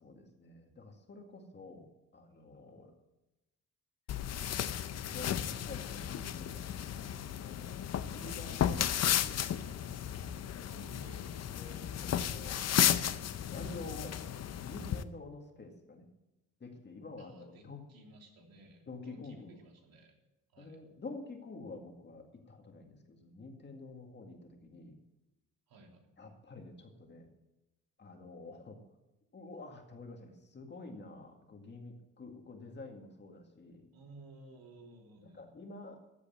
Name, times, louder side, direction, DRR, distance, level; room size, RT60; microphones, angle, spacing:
voice 1, 0.0-1.9 2.1-2.9 5.0-10.6 11.5-12.6 13.0-14.2 14.6-16.0 16.6-17.9 18.9-19.6 20.6-25.0 26.2-27.3 28.0-28.8 29.3-33.9 35.2-36.0, left 3 dB, 30° left, 3 dB, 2.0 m, -49 dB
sound 1, 4.1-15.0, left 10 dB, 50° left, 0.6 m, -34 dB
voice 2, 10.7-11.4 17.2-17.6 17.9-20.1 20.5-20.8 25.7-26.1 33.9-35.5, right 2 dB, 85° right, 1 dB, 3.2 m, -55 dB
14.0 x 8.3 x 7.6 m, 0.96 s
wide cardioid pair, 165°, 35 cm